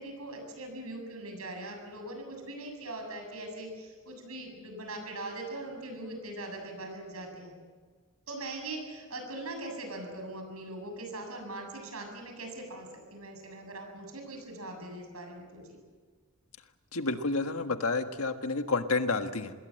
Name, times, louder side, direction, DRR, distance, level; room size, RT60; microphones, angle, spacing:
voice 1, 0.0-7.5 8.3-15.7, right 2 dB, 75° right, 4 dB, 7.5 m, -41 dB
voice 2, 16.9-19.5, left 3 dB, 75° left, 7 dB, 1.7 m, -30 dB
27.0 x 21.0 x 7.8 m, 1.5 s
head